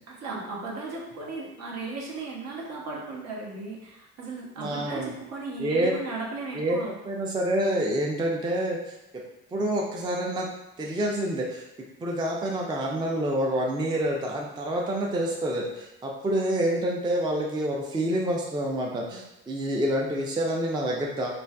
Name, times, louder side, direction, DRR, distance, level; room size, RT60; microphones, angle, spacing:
voice 1, 0.1-6.9, right 3 dB, 55° right, -2 dB, 0.8 m, -36 dB
voice 2, 4.6-5.1 5.6-5.9 6.5-6.8 7.0-8.8 9.5-10.5 10.8-11.6 12.0-21.3, right 1 dB, 15° right, -1 dB, 0.4 m, -27 dB
2.4 x 2.3 x 2.2 m, 0.89 s
supercardioid pair, 70°, 31 cm